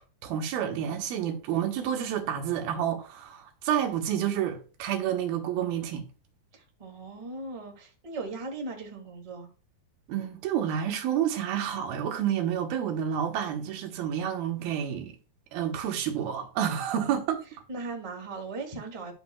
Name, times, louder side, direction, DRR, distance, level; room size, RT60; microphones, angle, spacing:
voice 1, 0.2-6.1 10.1-15.2 15.5-17.4, right 9 dB, 75° right, 2.8 m, -29 dB
voice 2, 6.5-9.5 17.7-19.1, right 3 dB, 15° right, 1.0 m, -38 dB
12.5 x 6.2 x 2.3 m
omnidirectional pair, 4.4 m